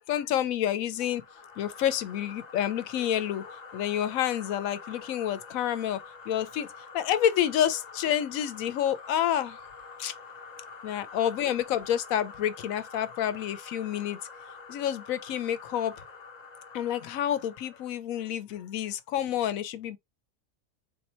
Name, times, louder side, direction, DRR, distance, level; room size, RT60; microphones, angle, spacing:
voice 1, 0.1-1.2 1.6-6.7 6.9-9.6 10.0-10.1 10.8-14.2 14.7-15.9 16.7-20.0, left 10 dB, 85° left, 1.0 m, -29 dB
sound 1, 1.0-18.0, left 4 dB, 40° left, 0.6 m, -47 dB
3.6 x 2.8 x 4.2 m
omnidirectional pair, 1.4 m